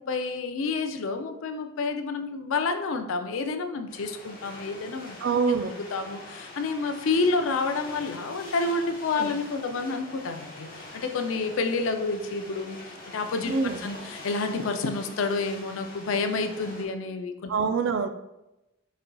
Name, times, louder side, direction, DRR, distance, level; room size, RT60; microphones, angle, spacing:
voice 1, 0.0-5.2 5.8-12.8 13.1-17.5, left 3 dB, 75° left, 7 dB, 0.4 m, -29 dB
sound 1, 3.9-16.9, left 2 dB, 45° left, 0.8 m, -44 dB
voice 2, 5.2-5.7 9.2-9.3 13.5-13.8 17.5-18.1, right 5 dB, 65° right, 8 dB, 0.4 m, -25 dB
4.1 x 3.9 x 2.2 m, 0.92 s
head